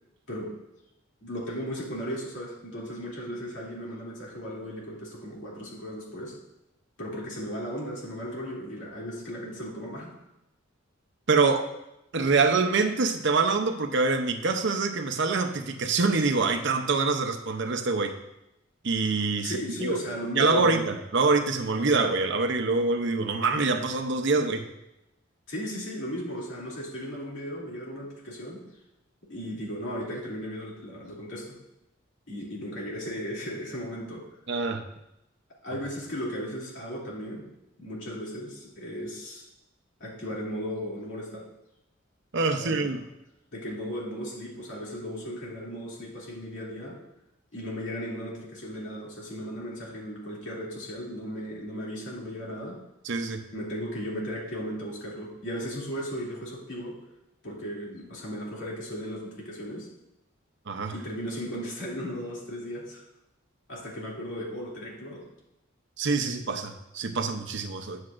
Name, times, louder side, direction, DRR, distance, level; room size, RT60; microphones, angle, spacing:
voice 1, 1.2-6.4 7.0-10.2 19.4-20.8 25.5-28.6 29.2-31.6 32.3-34.3 35.6-37.5 37.8-39.5 40.0-41.4 42.6-43.1 43.5-47.0 47.5-52.8 53.5-57.0 57.4-59.9 60.9-63.0 63.7-65.2, equal, 65° left, -4 dB, 2.7 m, -36 dB
voice 2, 11.3-11.7 12.1-18.2 18.8-20.0 20.4-24.7 34.5-34.8 42.3-43.0 53.0-53.4 60.7-60.9 66.0-68.0, right 3 dB, 60° right, 5 dB, 0.7 m, -25 dB
9.5 x 8.0 x 2.5 m, 0.89 s
head